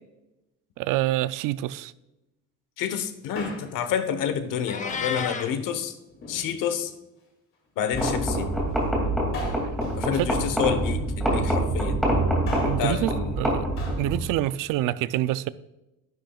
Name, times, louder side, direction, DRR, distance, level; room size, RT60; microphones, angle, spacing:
voice 1, 0.8-1.9 10.2-10.3 12.6-13.1 13.4-13.6 14.0-15.5, right 15 dB, 85° right, 0.5 m, -26 dB
voice 2, 2.8-6.0 6.3-6.9 7.8-8.5 10.0-12.0 12.8-13.4, left 8 dB, 90° left, 1.1 m, -29 dB
Male speech man speaking, 3.1-3.9 4.9-5.3 6.1-6.9 8.0-8.3 9.3-11.0 12.2-12.9 13.8-14.1 14.4-14.5, left 2 dB, 40° left, 2.3 m, -39 dB
Meow, 4.7-5.5, left 6 dB, 25° left, 0.7 m, -31 dB
sound 1, 7.9-14.3, right 1 dB, ahead, 2.5 m, -25 dB
11.5 x 10.5 x 2.3 m
cardioid pair, 165°, 31 cm